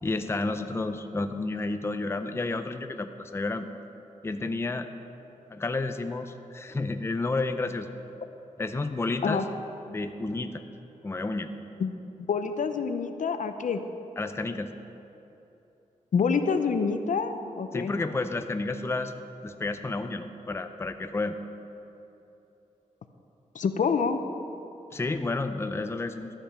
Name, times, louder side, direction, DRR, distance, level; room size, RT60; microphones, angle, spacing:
voice 1, 0.0-3.7 4.2-4.9 5.5-7.9 8.6-9.4 9.9-10.6 11.0-11.5 14.2-14.7 17.7-19.1 19.4-21.4 24.9-26.3, left 3 dB, 20° left, 8 dB, 0.5 m, -31 dB
voice 2, 12.3-13.8 16.1-17.9 23.5-24.2, left 5 dB, 75° left, 8 dB, 0.7 m, -27 dB
13.0 x 8.8 x 5.6 m, 2.9 s
wide cardioid pair, 125°, 13 cm